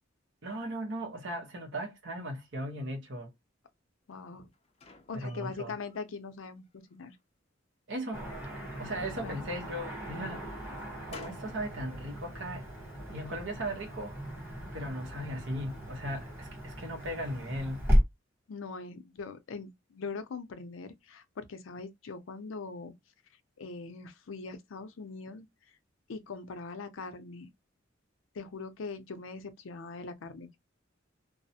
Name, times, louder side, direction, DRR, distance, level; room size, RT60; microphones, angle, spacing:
voice 1, 0.4-3.3 5.2-5.7 7.9-8.2 8.8-10.5 11.1-12.7 13.1-14.2 14.7-17.8, right 1 dB, 65° right, 0.8 m, -37 dB
voice 2, 4.1-4.5 5.1-7.2 9.0-9.4 18.5-22.9 23.6-25.5 26.1-27.5 28.3-30.6, left 4 dB, 80° left, 0.5 m, -41 dB
sound 1, 4.1-6.0 6.5-7.2 8.2-9.7 10.3-11.6, left 3 dB, 30° left, 0.5 m, -54 dB
Car passing by / Traffic noise roadway noise, 8.1-18.0, equal, 10° right, 1.2 m, -35 dB
2.3 x 2.0 x 2.7 m
head